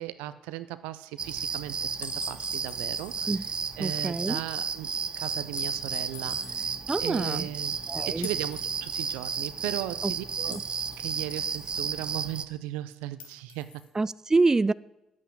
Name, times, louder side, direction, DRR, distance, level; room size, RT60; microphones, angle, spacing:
voice 1, 0.0-6.7 7.0-10.6 11.0-13.8, right 14 dB, 85° right, 0.5 m, -37 dB
sound 1, 1.2-12.4, right 5 dB, 50° right, 0.7 m, -33 dB
sound 2, 2.0-3.3 3.6-3.7 5.6-6.6 8.2-9.2 10.5-11.8 13.2-13.9, left 6 dB, 70° left, 1.6 m, -44 dB
voice 2, 3.8-4.4 6.9-7.5 7.9-8.3 10.0-10.1 10.5-10.6 14.0-14.7, right 3 dB, 25° right, 0.3 m, -26 dB
Bass guitar, 6.3-12.5, right 1 dB, 10° right, 2.0 m, -56 dB
9.8 x 8.4 x 8.5 m
hypercardioid pair, 45°, 2 cm